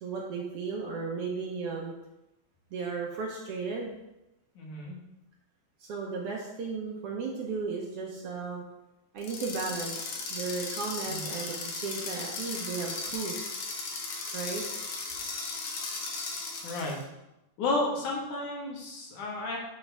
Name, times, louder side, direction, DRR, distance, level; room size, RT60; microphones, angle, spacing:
voice 1, 0.0-1.9 2.7-3.9 5.8-8.6 9.1-13.5 14.3-14.8 15.2-15.3, right 4 dB, 65° right, -1 dB, 1.6 m, -35 dB
voice 2, 4.6-5.0 11.1-11.3 16.6-17.0 17.6-19.6, left 2 dB, 90° left, -2 dB, 3.0 m, -32 dB
sound 1, 9.2-17.0, left 3 dB, 60° left, 1.9 m, -36 dB
9.7 x 4.6 x 3.4 m, 0.93 s
omnidirectional pair, 3.4 m